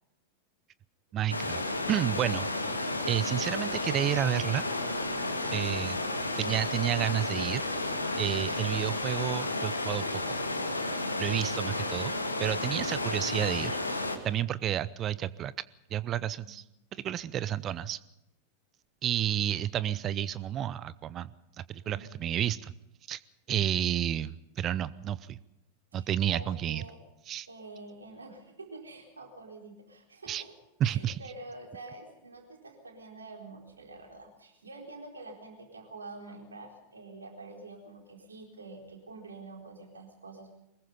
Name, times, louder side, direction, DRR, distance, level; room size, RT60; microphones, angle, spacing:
voice 1, 1.1-1.6 1.9-2.8 3.1-4.6 5.5-6.0 6.4-7.6 8.2-10.0 10.3-10.4 11.2-12.1 12.4-13.8 14.2-15.5 15.9-16.6 16.9-18.0 19.0-21.3 21.7-22.7 23.1-23.2 23.5-25.4 25.9-26.8 27.3-27.5 30.3-30.4 30.8-31.2, right 11 dB, 30° right, 19 dB, 0.6 m, -30 dB
sound 1, 1.3-14.2, left 2 dB, 80° left, 2.0 m, -32 dB
voice 2, 21.8-22.2 25.9-27.0 27.4-30.5 30.8-40.6, right 2 dB, 75° right, 2 dB, 4.2 m, -47 dB
23.5 x 20.5 x 5.4 m, 0.87 s
figure-of-eight pair, 90°, 0 cm